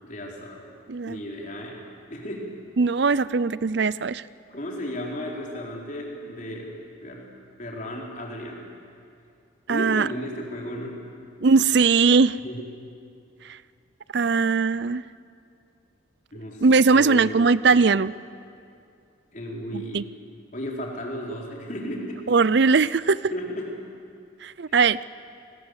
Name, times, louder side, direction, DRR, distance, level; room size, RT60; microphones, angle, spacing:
voice 1, 0.0-0.7 1.1-1.8 2.1-2.5 4.5-7.3 7.6-8.6 9.7-11.1 12.4-12.6 16.3-17.5 19.3-20.0 20.5-22.3 23.3-23.7, equal, 40° left, -1 dB, 4.3 m, -34 dB
voice 2, 0.9-1.2 2.8-4.2 9.7-10.1 11.4-12.4 14.1-15.0 16.6-18.1 19.7-20.0 22.3-23.2 24.4-25.1, right 4 dB, 60° right, 18 dB, 0.5 m, -20 dB
27.5 x 20.5 x 8.1 m, 2.4 s
head